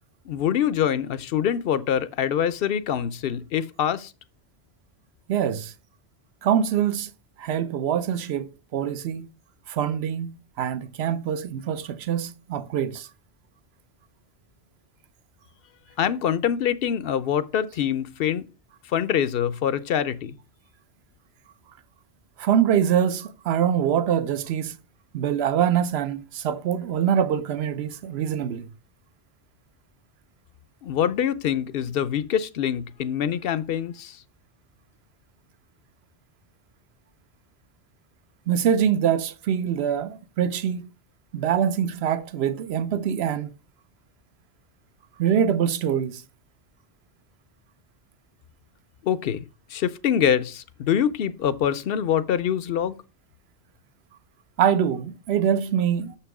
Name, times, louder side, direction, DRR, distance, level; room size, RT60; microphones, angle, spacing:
voice 1, 0.3-4.1 16.0-18.4 18.9-20.4 30.8-34.2 49.0-53.0, left 9 dB, 60° left, 0.7 m, -25 dB
voice 2, 5.3-5.7 6.4-7.1 7.4-9.3 9.7-13.1 22.4-24.8 25.1-28.7 38.5-40.9 41.3-43.5 45.2-46.2 54.6-56.2, right 9 dB, 70° right, 0.9 m, -24 dB
6.8 x 5.9 x 4.7 m
omnidirectional pair, 1.2 m